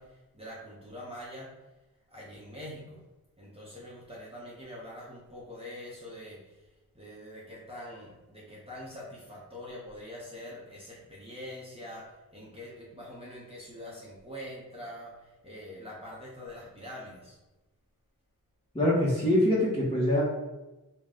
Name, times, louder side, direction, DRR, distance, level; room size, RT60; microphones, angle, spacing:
voice 1, 0.0-1.6 2.1-3.0 3.4-6.7 6.9-17.4, left 1 dB, 15° right, -7 dB, 0.9 m, -44 dB
voice 2, 18.7-20.2, left 1 dB, 15° left, -9 dB, 1.1 m, -24 dB
3.9 x 2.3 x 3.7 m, 1.1 s
wide cardioid pair, 70°, 37 cm